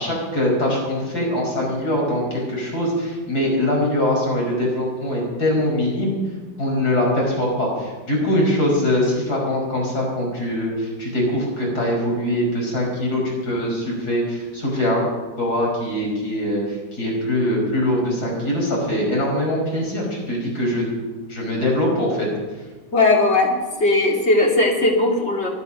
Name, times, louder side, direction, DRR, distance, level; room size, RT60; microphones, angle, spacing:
voice 1, 0.0-6.1 6.6-15.0 15.4-20.9 21.3-22.3, left 1 dB, 60° left, -2 dB, 5.9 m, -22 dB
voice 2, 22.9-25.5, left 2 dB, 35° left, 0 dB, 2.7 m, -18 dB
23.5 x 8.8 x 6.2 m, 1.3 s
omnidirectional pair, 1.9 m